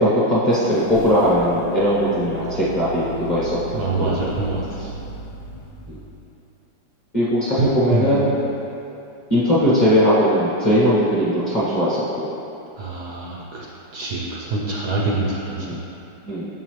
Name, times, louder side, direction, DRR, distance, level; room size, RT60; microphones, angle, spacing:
voice 1, 0.0-4.2 4.8-4.9 5.9-6.0 7.1-8.3 9.3-12.3 15.6-15.8 16.2-16.5, equal, 30° left, -10 dB, 1.0 m, -19 dB
sound 1, 0.5-6.4, right 2 dB, 70° left, 1.2 m, -36 dB
voice 2, 3.7-4.8 7.6-8.2 12.8-13.7 13.9-15.8, right 2 dB, 65° right, -4 dB, 1.1 m, -25 dB
6.9 x 5.7 x 3.1 m, 2.8 s
omnidirectional pair, 2.2 m